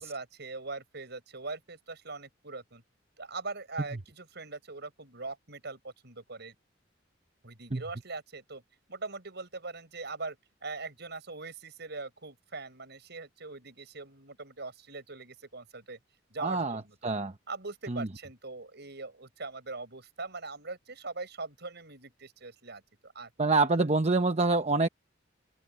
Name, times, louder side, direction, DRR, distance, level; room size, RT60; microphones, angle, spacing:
voice 1, 0.0-2.8 3.2-6.5 7.4-8.6 8.9-10.4 10.6-16.0 16.3-17.1 17.5-23.3, right 3 dB, 60° right, 7.8 m, -41 dB
voice 2, 16.4-17.3 17.9-18.1 23.4-24.9, right 3 dB, 35° right, 1.0 m, -26 dB
open air
head